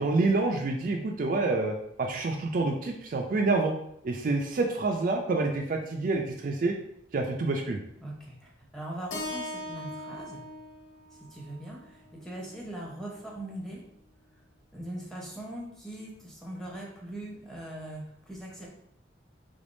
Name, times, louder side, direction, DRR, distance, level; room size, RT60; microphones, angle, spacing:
voice 1, 0.0-3.7 4.0-6.8 7.1-7.8, right 3 dB, 45° right, 2 dB, 0.4 m, -27 dB
voice 2, 8.0-10.4 11.2-13.8 14.7-18.7, right 1 dB, 5° left, -4 dB, 0.8 m, -41 dB
Keyboard (musical), 9.1-13.3, left 1 dB, 80° left, 0.6 m, -41 dB
3.5 x 3.4 x 2.6 m, 0.75 s
head